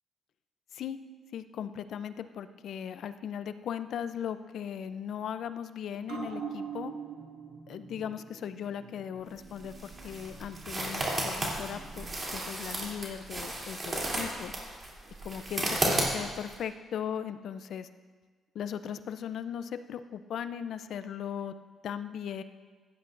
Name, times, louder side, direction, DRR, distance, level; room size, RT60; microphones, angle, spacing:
voice 1, 1.3-6.9 7.7-14.5 15.2-17.9 18.5-21.5 21.8-22.4, left 8 dB, 70° left, 12 dB, 0.5 m, -38 dB
sound 1, 6.0-13.0 13.3-13.4, right 6 dB, 85° right, 2.0 m, -45 dB
sound 2, 9.4-16.5, right 1 dB, 30° right, 3.0 m, -33 dB
16.0 x 10.5 x 2.6 m, 1.5 s
cardioid pair, 90°, 0 cm